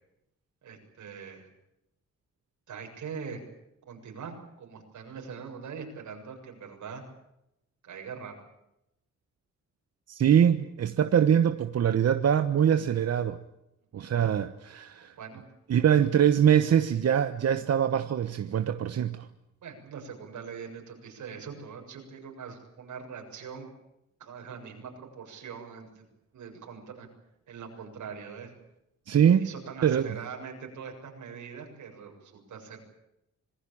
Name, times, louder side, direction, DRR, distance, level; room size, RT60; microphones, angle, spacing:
voice 1, 0.6-1.5 2.7-3.4 3.9-7.0 7.8-8.3 14.0-14.1 15.2-15.5 19.6-23.7 24.2-26.1 26.3-27.1 27.5-28.5 29.4-32.8, right 6 dB, 90° right, 3 dB, 7.3 m, -42 dB
voice 2, 10.1-13.4 13.9-15.1 15.7-19.3 29.1-29.5 29.8-30.1, right 9 dB, 60° right, 9 dB, 1.1 m, -23 dB
26.5 x 19.5 x 8.7 m, 0.85 s
wide cardioid pair, 130°, 29 cm